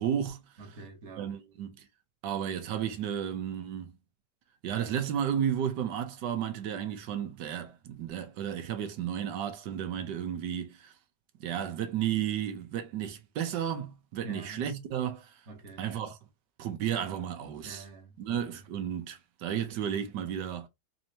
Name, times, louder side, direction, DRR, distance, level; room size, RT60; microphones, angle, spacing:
voice 1, 0.0-0.4 1.2-1.9 2.2-3.9 4.6-10.9 11.4-15.4 15.8-16.2 16.6-17.8 18.2-20.7, right 9 dB, 75° right, 1.3 m, -33 dB
voice 2, 0.6-1.4 9.9-10.1 14.2-14.6 15.5-15.9 17.6-18.6, right 2 dB, 45° right, 1.4 m, -47 dB
4.2 x 2.8 x 2.7 m
omnidirectional pair, 1.9 m